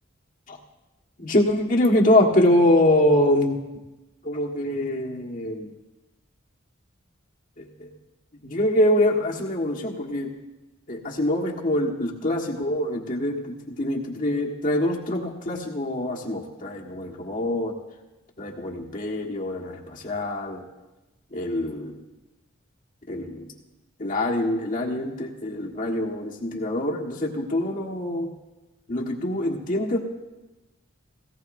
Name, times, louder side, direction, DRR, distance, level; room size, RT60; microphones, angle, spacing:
voice 1, 1.2-3.6 4.2-5.7 7.6-7.9 8.4-10.3 10.9-17.7 18.4-20.6 21.3-22.0 23.1-23.5 24.0-28.3 28.9-30.0, left 1 dB, 40° left, -3 dB, 1.5 m, -24 dB
18.0 x 17.0 x 2.6 m, 1.1 s
head